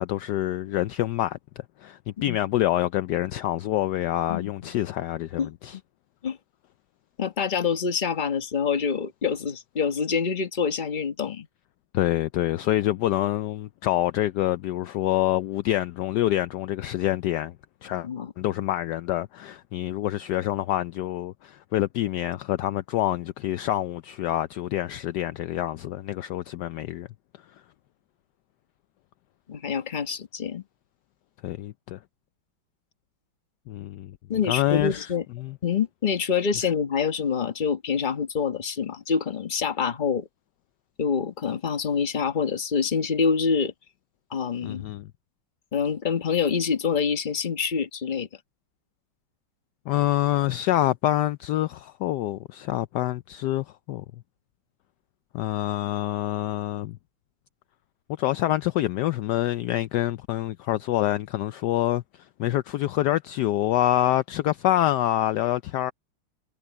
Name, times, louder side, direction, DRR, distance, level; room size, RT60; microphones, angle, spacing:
voice 1, 0.0-1.4 1.8-5.8 11.9-17.5 17.8-18.1 18.4-27.1 31.4-32.0 33.7-34.2 34.5-35.1 35.4-35.6 44.6-45.1 49.9-54.0 55.3-57.0 58.2-62.0 62.4-65.9, left 14 dB, 80° left, 0.9 m, -26 dB
voice 2, 4.3-4.7 5.4-5.8 6.2-6.4 7.2-11.5 18.0-18.3 29.5-30.6 34.3-35.2 35.6-40.3 41.0-43.7 44.3-44.8 45.7-48.3, left 6 dB, 30° left, 1.1 m, -26 dB
omnidirectional pair, 2.3 m